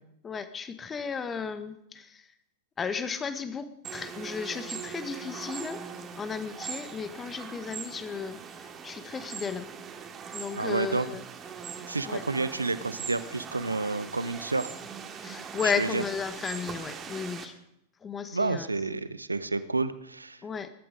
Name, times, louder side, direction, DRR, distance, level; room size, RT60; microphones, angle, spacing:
voice 1, 0.2-2.3 2.8-5.8 6.1-9.7 10.3-11.2 12.1-12.2 15.2-17.5 18.0-18.7 20.4-20.7, left 6 dB, 20° left, 11 dB, 1.5 m, -34 dB
sound 1, 3.8-17.5, right 6 dB, 25° right, 2.4 m, -41 dB
voice 2, 10.5-11.1 11.9-14.7 15.6-16.0 18.3-20.4, right 3 dB, 80° right, 15 dB, 0.9 m, -30 dB
21.5 x 12.5 x 5.2 m, 0.78 s
figure-of-eight pair, 90°, 0 cm